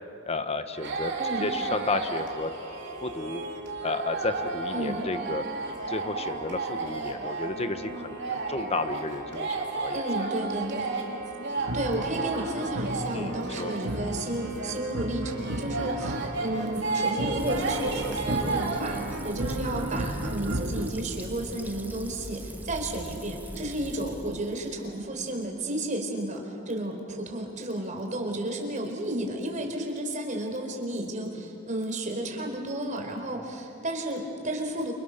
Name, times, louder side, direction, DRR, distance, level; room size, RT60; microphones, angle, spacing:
voice 1, 0.3-1.1 1.4-2.5 3.0-3.4 3.8-5.4 5.9-10.3 13.1-13.7, left 3 dB, 30° left, 9 dB, 1.3 m, -32 dB
sound 1, 0.7-19.3, right 3 dB, 60° right, 3.5 m, -33 dB
voice 2, 1.2-1.5 4.7-5.0 9.9-10.9 11.7-19.0 19.2-34.9, right 1 dB, 40° right, 3 dB, 4.5 m, -32 dB
sound 2, 11.6-20.9, right 1 dB, 90° right, 2.1 m, -35 dB
Fill (with liquid), 17.4-25.0, right 1 dB, 10° right, 1.1 m, -40 dB
29.5 x 29.0 x 6.8 m, 2.6 s
head